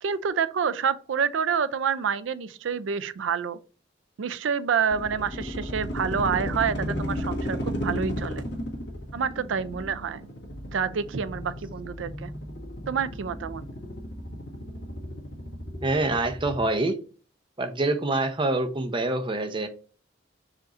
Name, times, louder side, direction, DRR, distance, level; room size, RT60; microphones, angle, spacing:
voice 1, 0.0-3.6 4.2-8.4 9.1-10.2 10.7-12.3 12.9-13.6, right 6 dB, 85° right, 0.4 m, -28 dB
sound 1, 4.9-16.6, equal, 60° left, 1.5 m, -34 dB
voice 2, 15.8-17.0 17.6-19.7, right 2 dB, 25° right, 0.6 m, -26 dB
5.0 x 2.5 x 4.2 m
head